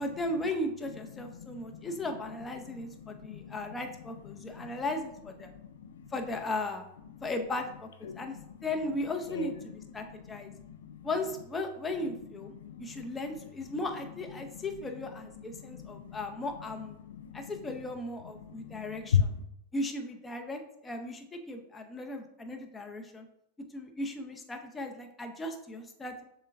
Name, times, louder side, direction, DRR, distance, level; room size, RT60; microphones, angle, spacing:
voice 1, 0.0-5.5 6.1-6.8 7.2-8.4 8.6-10.5 11.0-12.5 12.8-17.0 17.3-19.2 19.7-23.3 23.7-26.2, left 2 dB, 15° left, 4 dB, 0.7 m, -36 dB
voice 2, 1.1-2.0 2.6-3.8 4.3-4.8 5.4-6.1 7.0-7.3 8.0-8.7 9.3-11.1 12.0-12.2 12.5-13.8 14.3-16.4 16.8-17.8 18.2-19.4, left 7 dB, 85° left, 9 dB, 0.4 m, -38 dB
6.6 x 2.2 x 3.5 m, 0.77 s
hypercardioid pair, 110°, 0 cm